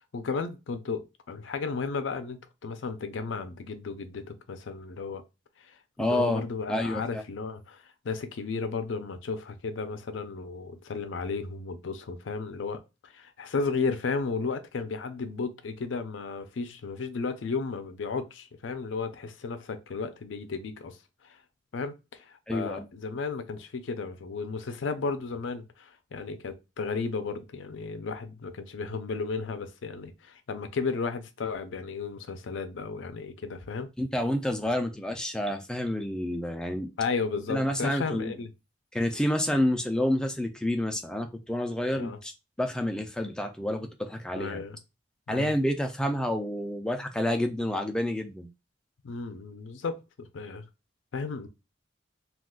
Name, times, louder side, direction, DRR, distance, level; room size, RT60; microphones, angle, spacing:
voice 1, 0.1-5.2 5.6-21.4 21.7-33.9 37.0-38.5 41.9-42.2 44.3-44.8 45.3-45.5 49.0-50.6 51.1-51.5, left 4 dB, 75° left, 0.5 m, -34 dB
voice 2, 6.0-6.4 6.7-7.2 22.5-22.9 34.0-36.9 37.5-38.3 38.9-42.3 42.6-44.6 45.3-48.5, left 1 dB, 5° left, 0.3 m, -29 dB
2.4 x 2.3 x 3.6 m
head